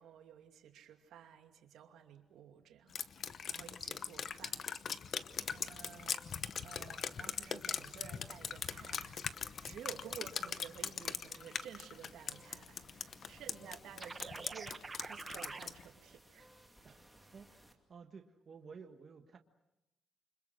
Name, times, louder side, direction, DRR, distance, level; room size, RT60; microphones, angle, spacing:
voice 1, 0.0-4.9 5.5-6.2 6.6-9.2 9.6-16.5, right 9 dB, 85° right, 5 dB, 2.6 m, -53 dB
Drip, 2.9-15.8, left 7 dB, 40° left, 0.9 m, -41 dB
sound 1, 5.3-17.7, right 1 dB, ahead, 2.4 m, -62 dB
sound 2, 14.0-15.7, right 3 dB, 20° right, 1.0 m, -46 dB
voice 2, 16.8-19.4, right 5 dB, 35° right, 5 dB, 1.5 m, -55 dB
29.0 x 26.0 x 6.4 m, 0.91 s
cardioid pair, 170°, 0 cm